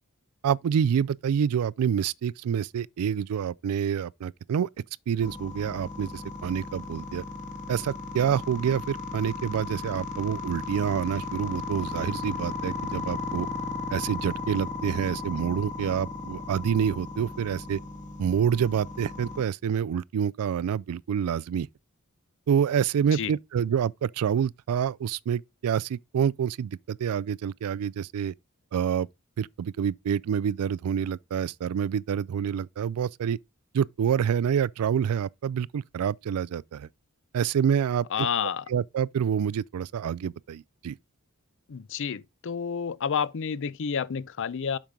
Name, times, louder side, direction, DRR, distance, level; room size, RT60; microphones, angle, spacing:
voice 1, 0.4-4.7 5.1-7.2 7.7-13.5 13.9-17.8 18.2-21.7 22.5-28.3 28.7-29.1 29.4-33.4 33.7-36.9 37.3-38.3 38.7-41.0, right 8 dB, 80° right, 0.3 m, -27 dB
sound 1, 5.2-19.4, left 3 dB, 35° left, 1.6 m, -36 dB
voice 2, 38.1-38.6 41.7-44.8, left 7 dB, 60° left, 0.5 m, -30 dB
7.3 x 5.3 x 3.6 m
head